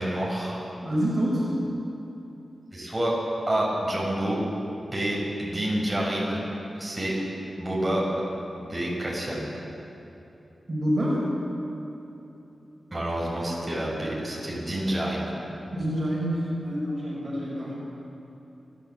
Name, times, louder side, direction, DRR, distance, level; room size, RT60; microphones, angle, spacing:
voice 1, 0.0-0.7 2.7-3.1 3.5-4.4 4.8-6.4 6.8-7.1 7.6-8.0 8.6-9.5 12.9-15.3, right 1 dB, 20° right, -4 dB, 6.2 m, -28 dB
voice 2, 0.8-1.5 10.7-11.3 15.7-17.7, equal, 40° right, -5 dB, 5.7 m, -27 dB
29.0 x 12.0 x 7.9 m, 3.0 s
wide cardioid pair, 85°, 0 cm